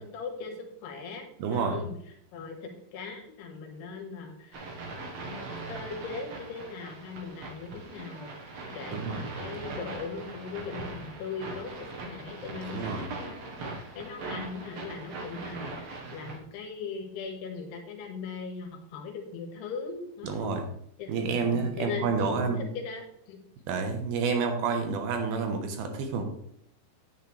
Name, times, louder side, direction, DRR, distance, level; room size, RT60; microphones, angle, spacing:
voice 1, 0.0-1.3 1.5-2.0 2.3-5.2 5.7-11.7 12.1-20.6 21.0-23.4, left 5 dB, 85° left, 3 dB, 3.6 m, -39 dB
voice 2, 1.4-1.8 8.9-9.2 12.6-13.1 20.2-20.6 21.1-22.7 23.7-26.2, right 5 dB, 75° right, 5 dB, 2.9 m, -29 dB
sound 1, 4.5-16.4, right 3 dB, 55° right, 1.8 m, -40 dB
10.0 x 9.1 x 3.3 m, 0.70 s
omnidirectional pair, 4.7 m